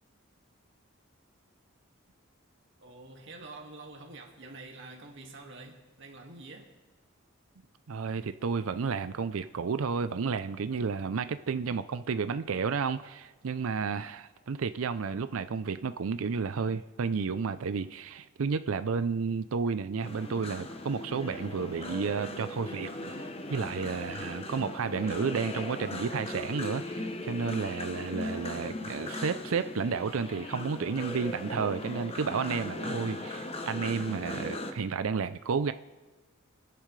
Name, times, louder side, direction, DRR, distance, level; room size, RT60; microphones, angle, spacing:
voice 1, 2.8-6.7, right 2 dB, 60° right, 1 dB, 2.0 m, -47 dB
voice 2, 7.9-35.7, right 5 dB, 80° right, 12 dB, 0.5 m, -32 dB
sound 1, 20.0-34.7, left 1 dB, 30° left, 0.8 m, -38 dB
25.0 x 10.5 x 3.2 m, 1.3 s
head